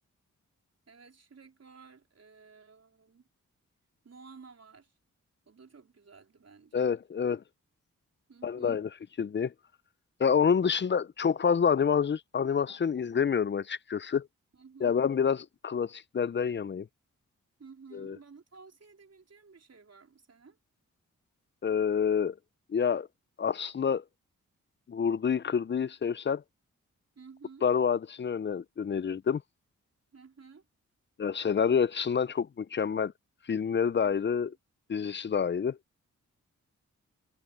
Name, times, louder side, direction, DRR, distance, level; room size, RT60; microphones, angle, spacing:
voice 1, 0.9-3.3 4.0-5.0 5.5-7.0 8.3-8.8 14.5-15.0 17.6-20.6 27.2-27.7 30.1-30.7 34.0-34.3, right 5 dB, 50° right, 4.0 m, -54 dB
voice 2, 6.7-7.4 8.4-8.9 9.2-9.5 10.2-14.3 14.8-15.4 15.6-16.9 17.9-18.2 21.6-22.4 22.7-23.1 23.4-24.0 24.9-26.4 27.6-29.4 31.2-33.1 33.5-34.5 34.9-35.8, left 7 dB, 35° left, 0.5 m, -27 dB
cardioid pair, 50°, 32 cm